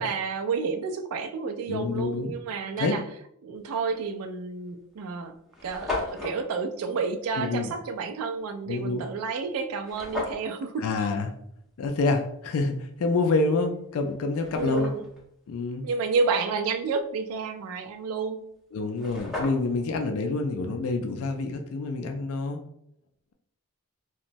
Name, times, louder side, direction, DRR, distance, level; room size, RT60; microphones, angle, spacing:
voice 1, 0.0-3.1 3.4-5.4 5.6-11.1 14.5-15.0 15.8-18.5, right 4 dB, 75° right, 0.3 m, -30 dB
voice 2, 1.7-2.3 2.8-2.9 7.4-7.7 8.7-9.0 10.8-11.3 11.8-14.9 15.5-15.8 18.7-22.6, left 3 dB, 70° left, 0.3 m, -27 dB
sound 1, 4.0-4.2 4.9-5.0 5.2-5.3 5.5-6.4 9.8-10.5 13.4-13.5 14.1-15.2 18.6-18.7 18.9-19.9, left 2 dB, ahead, 0.6 m, -34 dB
2.9 x 2.1 x 2.5 m
head